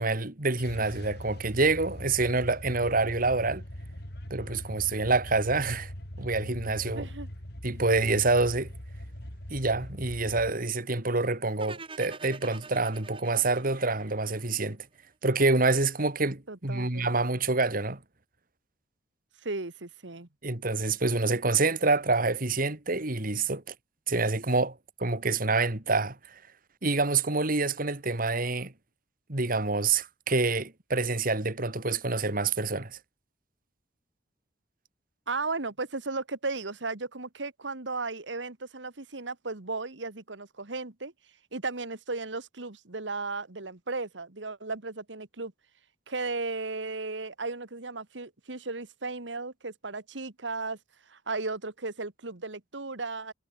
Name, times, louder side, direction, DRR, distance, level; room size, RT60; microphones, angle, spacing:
voice 1, 0.0-3.6 4.3-5.9 6.2-7.1 7.6-8.7 9.5-14.8 15.2-18.0 20.4-23.6 24.1-26.2 26.8-28.7 29.3-33.0, right 3 dB, 50° right, 2.6 m, -27 dB
sound 1, 0.6-10.5, equal, 65° left, 5.5 m, -41 dB
voice 2, 6.9-7.3 16.5-17.1 19.4-20.3 35.3-41.1 41.5-45.5 46.1-50.8 51.1-53.3, right 3 dB, 80° right, 1.9 m, -35 dB
sound 2, 11.6-14.7, right 4 dB, 30° right, 3.7 m, -45 dB
head